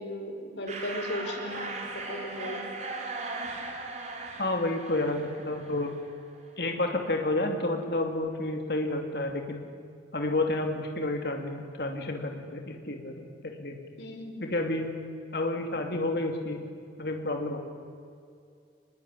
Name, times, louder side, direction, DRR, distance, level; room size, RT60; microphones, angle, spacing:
voice 1, 0.0-2.7 14.0-14.4, left 1 dB, 85° left, 4 dB, 4.9 m, -36 dB
sound 1, 0.7-6.2, right 3 dB, 40° right, 4.1 m, -38 dB
voice 2, 4.4-5.9 6.6-9.6 10.1-13.8 14.4-14.9 15.3-16.6 17.0-17.6, left 2 dB, 60° left, 3 dB, 2.7 m, -30 dB
25.5 x 21.5 x 9.9 m, 2.3 s
head